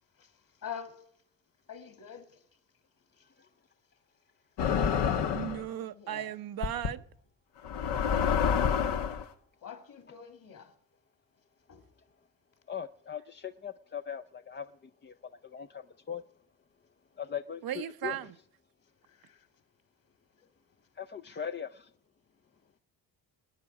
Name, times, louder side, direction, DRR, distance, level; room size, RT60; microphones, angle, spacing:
voice 1, 0.6-1.0 1.7-2.4 5.0-6.3 9.6-10.7 11.7-11.9 18.0-18.2 19.2-19.5 20.4-20.5 21.3-21.4, left 8 dB, 50° left, 2.9 m, -45 dB
sound 1, 4.6-5.6 6.6-6.9 7.6-9.2, left 7 dB, 70° left, 1.3 m, -28 dB
voice 2, 5.3-7.0 17.6-18.3, right 11 dB, 55° right, 0.7 m, -36 dB
voice 3, 12.7-16.2 17.2-18.2 21.0-21.9, left 8 dB, 25° left, 0.5 m, -40 dB
27.5 x 9.7 x 4.8 m
cardioid pair, 80°, 43 cm